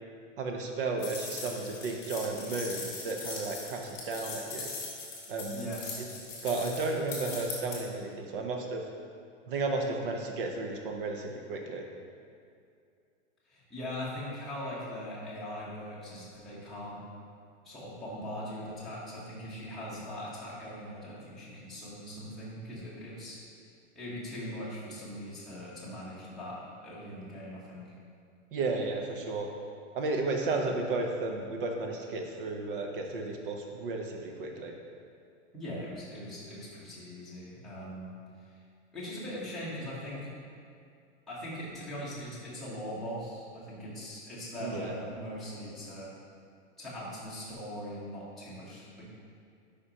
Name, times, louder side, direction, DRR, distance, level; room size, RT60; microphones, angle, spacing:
voice 1, 0.4-4.7 5.3-5.7 6.0-6.1 6.4-8.8 9.5-11.8 28.5-29.5 29.9-34.7 44.6-44.9, right 3 dB, 45° right, 2 dB, 0.8 m, -33 dB
sound 1, 1.0-7.8, left 4 dB, 20° left, 1.2 m, -40 dB
voice 2, 5.5-6.1 13.5-17.0 17.6-23.4 23.9-27.9 35.5-38.1 38.4-38.6 38.9-40.3 41.3-46.1 46.8-49.0, equal, ahead, -11 dB, 1.0 m, -41 dB
9.2 x 5.1 x 2.9 m, 2.4 s
supercardioid pair, 170°, 37 cm